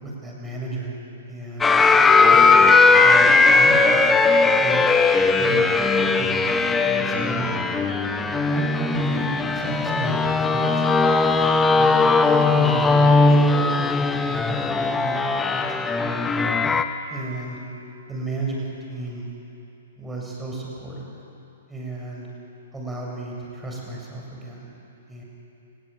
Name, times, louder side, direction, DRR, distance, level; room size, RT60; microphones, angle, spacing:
voice 1, 0.0-1.0 1.3-1.7 2.3-2.7 3.0-4.3 4.6-4.9 5.3-5.9 6.2-7.5 8.2-11.1 11.4-16.3 17.1-17.6 18.1-19.3 20.0-21.1 21.7-22.3 22.7-24.7 25.1-25.2, right 2 dB, 10° right, -2 dB, 7.7 m, -34 dB
sound 1, 1.6-16.8, left 3 dB, 10° left, 1.2 m, -18 dB
28.0 x 21.0 x 9.4 m, 2.8 s
figure-of-eight pair, 115°, 0 cm